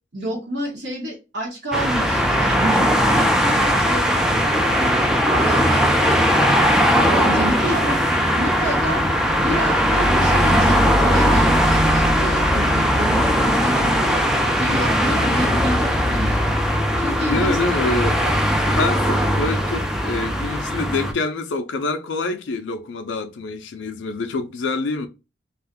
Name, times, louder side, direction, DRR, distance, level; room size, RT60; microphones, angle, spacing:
voice 1, 0.1-9.0 9.4-14.2 14.5-16.7 17.0-17.6 18.0-18.1, right 1 dB, 60° right, 1.0 m, -29 dB
sound 1, 1.7-21.1, equal, 5° right, 0.4 m, -19 dB
voice 2, 17.2-25.1, left 3 dB, 70° left, 0.4 m, -26 dB
2.4 x 2.1 x 3.4 m
head